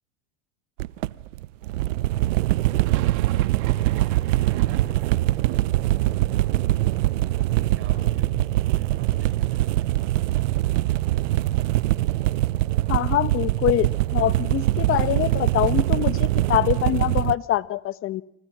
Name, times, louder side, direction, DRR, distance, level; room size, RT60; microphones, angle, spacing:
sound 1, 0.8-17.4, right 16 dB, 80° right, 0.9 m, -23 dB
sound 2, 2.6-8.6 8.8-9.7 10.0-10.1 10.3-12.5, right 14 dB, 50° right, 2.9 m, -41 dB
voice 1, 7.7-10.6, right 7 dB, 35° right, 5 dB, 5.9 m, -40 dB
voice 2, 12.9-18.2, left 12 dB, 35° left, 15 dB, 1.2 m, -24 dB
29.5 x 27.5 x 6.3 m, 0.81 s
supercardioid pair, 120°, 37 cm